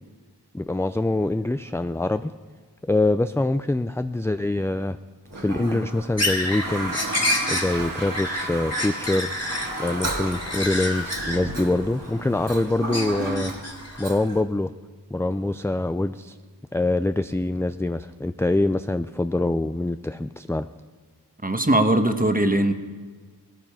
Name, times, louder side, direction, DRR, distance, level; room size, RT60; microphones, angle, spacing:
voice 1, 0.5-2.3 2.9-5.0 5.4-7.0 7.5-9.3 9.8-13.5 14.0-14.7 15.1-16.4 16.7-20.7, left 2 dB, 5° left, 10 dB, 0.4 m, -24 dB
Toilet flush, 5.3-14.4, right 2 dB, 50° right, 1.9 m, -33 dB
sound 1, 6.2-12.5 12.9-14.1, left 1 dB, 35° left, 2.9 m, -29 dB
voice 2, 21.4-22.7, right 1 dB, 20° right, 7 dB, 1.3 m, -20 dB
17.5 x 13.5 x 5.7 m, 1.5 s
wide cardioid pair, 40°, 42 cm